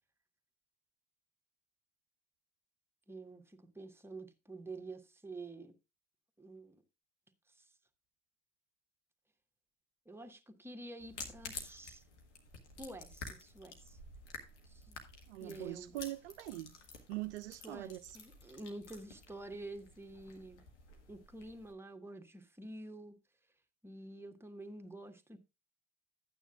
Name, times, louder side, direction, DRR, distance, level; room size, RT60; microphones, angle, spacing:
voice 1, 3.1-5.7 6.4-6.8 7.5-7.7 10.0-12.0 12.8-14.0 14.6-15.0 15.4-16.0 17.6-20.6 21.1-23.2 23.8-25.4, right 2 dB, 5° right, 1.5 m, -49 dB
sound 1, 11.0-21.7, left 4 dB, 80° left, 1.5 m, -51 dB
voice 2, 15.3-16.8 17.1-18.1, right 17 dB, 70° right, 0.5 m, -42 dB
12.5 x 9.0 x 2.4 m
figure-of-eight pair, 50°, 35 cm